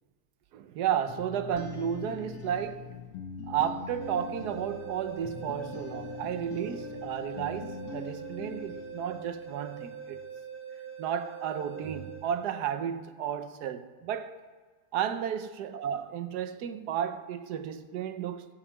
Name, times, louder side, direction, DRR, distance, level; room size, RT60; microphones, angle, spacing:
voice 1, 0.5-3.0 3.5-10.3 11.0-14.4 14.9-18.5, right 9 dB, 70° right, 1.0 m, -33 dB
sound 1, 1.1-9.8, left 6 dB, 90° left, 1.7 m, -43 dB
sound 2, 4.0-13.0, right 7 dB, 10° right, 0.8 m, -43 dB
15.0 x 5.5 x 8.1 m
omnidirectional pair, 2.4 m